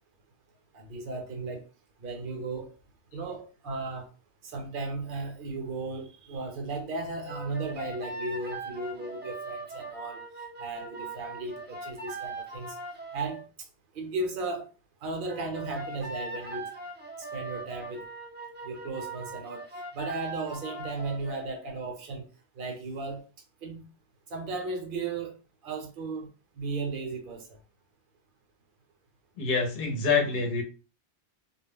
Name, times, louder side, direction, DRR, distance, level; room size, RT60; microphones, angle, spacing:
voice 1, 0.7-1.7 2.0-2.7 3.1-4.1 4.4-10.2 10.6-12.8 13.1-13.4 13.9-14.7 15.0-16.7 17.2-18.1 18.6-19.6 19.9-22.3 22.6-23.2 23.6-23.8 24.3-25.4 25.6-26.3 26.5-27.6, right 3 dB, 55° right, 0.8 m, -35 dB
sound 1, 7.2-13.4 15.2-21.4, right 2 dB, 15° right, 0.3 m, -40 dB
voice 2, 29.4-30.6, left 4 dB, 60° left, 0.8 m, -26 dB
2.2 x 2.0 x 3.5 m
omnidirectional pair, 1.1 m